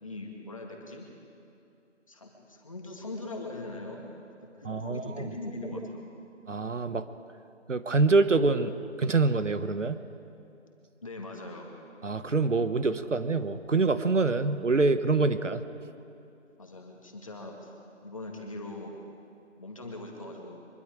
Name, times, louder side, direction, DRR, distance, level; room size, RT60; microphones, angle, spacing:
voice 1, 0.0-1.1 2.1-4.0 4.6-6.0 11.0-11.7 16.6-17.7 18.0-18.9 19.6-20.6, left 2 dB, 25° left, 1 dB, 2.0 m, -41 dB
voice 2, 4.6-5.3 6.5-7.1 7.7-8.7 9.0-10.0 12.0-15.6, right 3 dB, 85° right, 12 dB, 1.2 m, -25 dB
23.5 x 22.0 x 5.0 m, 2.7 s
figure-of-eight pair, 175°, 36 cm